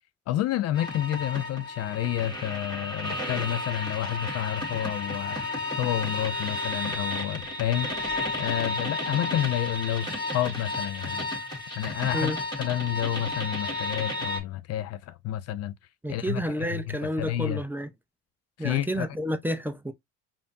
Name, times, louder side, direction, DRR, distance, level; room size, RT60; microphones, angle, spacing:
voice 1, 0.3-5.4 5.8-7.9 8.4-11.2 11.8-12.3 12.6-15.7 16.1-17.6 18.6-19.1, left 12 dB, 50° left, 0.4 m, -30 dB
sound 1, 0.7-14.4, left 2 dB, 15° left, 1.6 m, -32 dB
voice 2, 16.0-17.9 18.6-19.9, equal, 5° right, 0.5 m, -30 dB
4.9 x 2.6 x 2.5 m
supercardioid pair, 85°, 34 cm